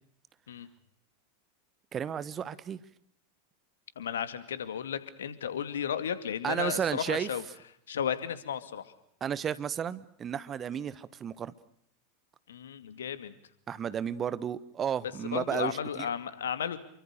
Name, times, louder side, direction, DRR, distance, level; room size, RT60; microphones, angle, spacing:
voice 1, 1.9-2.8 6.4-7.3 9.2-11.5 13.7-16.1, right 8 dB, 25° right, 17 dB, 1.3 m, -33 dB
voice 2, 4.0-7.4 7.9-8.9 12.5-13.3 15.2-16.8, left 8 dB, 70° left, 13 dB, 2.3 m, -34 dB
28.5 x 24.0 x 6.6 m, 0.68 s
figure-of-eight pair, 85°, 0 cm